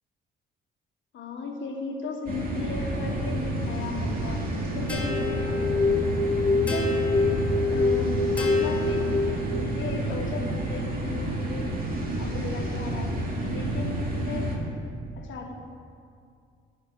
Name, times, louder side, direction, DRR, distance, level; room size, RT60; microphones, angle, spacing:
voice 1, 1.1-5.6 6.5-7.0 7.7-9.2 9.5-11.7 12.2-13.1 13.5-14.5 15.2-15.5, left 4 dB, 70° left, 3 dB, 1.4 m, -36 dB
sound 1, 2.3-14.6, right 1 dB, 45° right, 2.0 m, -29 dB
sound 2, 4.9-9.7, left 3 dB, 10° left, 2.5 m, -25 dB
12.5 x 5.1 x 6.1 m, 2.3 s
cardioid pair, 90°, 20 cm